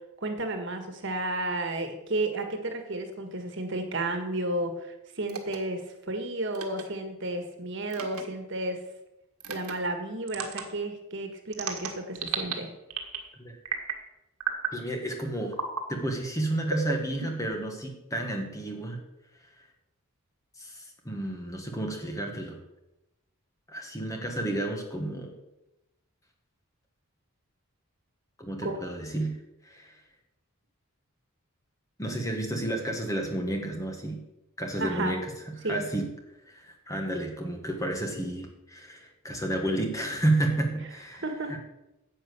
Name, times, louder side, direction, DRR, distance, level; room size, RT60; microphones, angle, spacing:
voice 1, 0.2-5.8 6.1-8.8 9.5-12.7 28.6-28.8 34.8-35.2 35.6-35.8 41.2-41.6, right 2 dB, 55° right, 5 dB, 1.7 m, -32 dB
sound 1, 5.3-5.6 6.5-6.8 7.9-8.2 9.4-9.7 10.3-10.6 11.5-12.5 12.9-13.3 13.7-14.0 14.4-14.8 15.5-15.8 16.7-17.6, right 6 dB, 85° right, 1.7 m, -33 dB
voice 2, 14.7-15.6 15.9-19.0 20.6-22.6 23.7-25.3 28.4-29.4 29.6-30.0 32.0-34.2 34.6-35.3 35.7-36.1 36.4-41.6, right 1 dB, 15° left, 3 dB, 1.6 m, -31 dB
10.0 x 8.1 x 6.9 m, 0.94 s
head